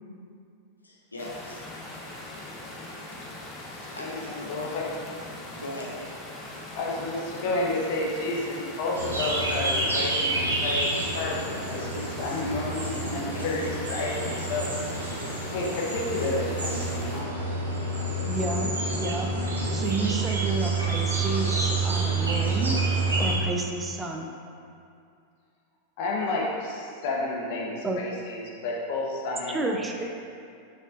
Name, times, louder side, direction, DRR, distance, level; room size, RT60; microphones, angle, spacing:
voice 1, 0.8-1.7 2.0-2.1 3.7-4.5 5.5-6.1, left 1 dB, 80° left, -2 dB, 0.9 m, -40 dB
sound 1, 1.2-17.2, left 1 dB, 25° left, 1.1 m, -41 dB
voice 2, 3.8-5.0 6.7-11.4 11.7-14.6 15.0-17.3 26.0-30.0, left 2 dB, 50° left, -2 dB, 1.1 m, -31 dB
sound 2, 9.0-23.4, right 2 dB, 75° right, 1.1 m, -28 dB
voice 3, 18.3-19.3 19.7-22.8 23.2-24.3 27.8-28.0 29.5-30.0, right 3 dB, 15° right, 2 dB, 0.5 m, -31 dB
6.6 x 5.9 x 2.6 m, 2.4 s
figure-of-eight pair, 90°, 0 cm